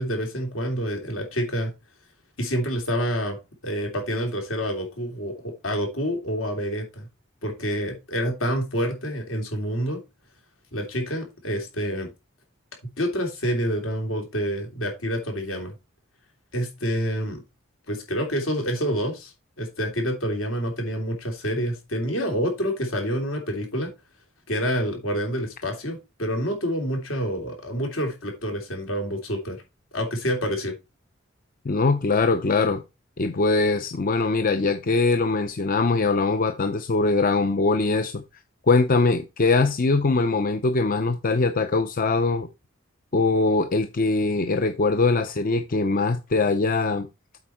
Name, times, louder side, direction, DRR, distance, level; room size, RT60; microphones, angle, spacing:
voice 1, 0.0-1.7 2.4-3.4 3.6-7.1 7.4-10.0 10.7-12.1 13.0-15.7 16.5-17.4 17.9-19.3 19.6-23.9 24.5-29.6 29.9-30.7, equal, 75° left, 3.1 m, -27 dB
voice 2, 31.6-32.8 33.2-38.2 38.7-42.5 43.1-47.1, left 3 dB, 45° left, 0.6 m, -22 dB
8.1 x 5.0 x 4.4 m
head